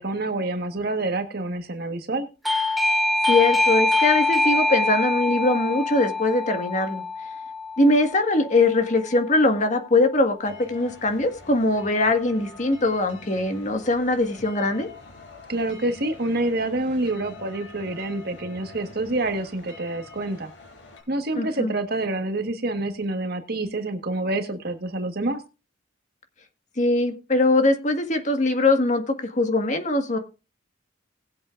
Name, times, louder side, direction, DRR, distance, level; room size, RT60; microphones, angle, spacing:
voice 1, 0.0-2.3 15.5-20.5 21.1-25.4, right 2 dB, 55° right, 6 dB, 1.5 m, -27 dB
Doorbell, 2.4-8.9, left 2 dB, ahead, 0.9 m, -24 dB
voice 2, 3.3-7.0 7.8-14.9 21.3-21.7 26.8-30.2, left 2 dB, 40° left, 5 dB, 1.7 m, -22 dB
sound 1, 10.4-21.0, left 3 dB, 90° left, 5.9 m, -45 dB
19.5 x 7.8 x 2.5 m, 0.30 s
head